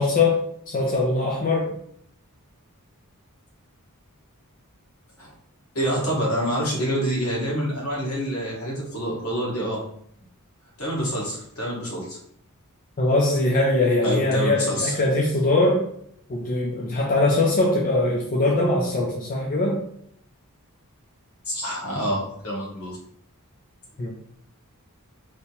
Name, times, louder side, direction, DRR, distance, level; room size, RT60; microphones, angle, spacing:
voice 1, 0.0-1.7 13.0-15.8 16.3-19.8 24.0-24.1, left 2 dB, 35° left, -1 dB, 0.4 m, -22 dB
voice 2, 5.7-9.8 10.8-12.2 14.0-14.9 21.5-23.0, equal, 65° left, -4 dB, 1.3 m, -27 dB
3.2 x 2.8 x 2.9 m, 0.68 s
head